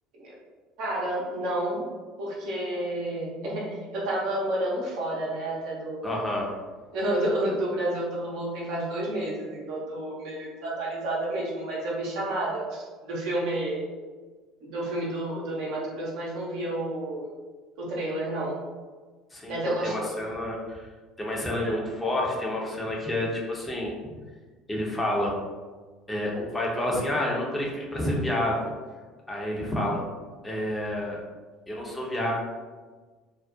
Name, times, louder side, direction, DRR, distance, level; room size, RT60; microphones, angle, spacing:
voice 1, 0.8-1.9 2.2-6.1 6.9-13.9 14.6-17.3 17.8-18.5 19.5-20.1, right 1 dB, 60° right, -5 dB, 0.7 m, -30 dB
voice 2, 6.0-6.5 19.3-20.9 21.2-23.9 24.7-25.3 26.1-28.7 29.3-30.0 30.4-31.2 31.7-32.3, left 1 dB, 15° left, -3 dB, 0.6 m, -29 dB
2.4 x 2.0 x 2.6 m, 1.4 s
figure-of-eight pair, 60°, 0 cm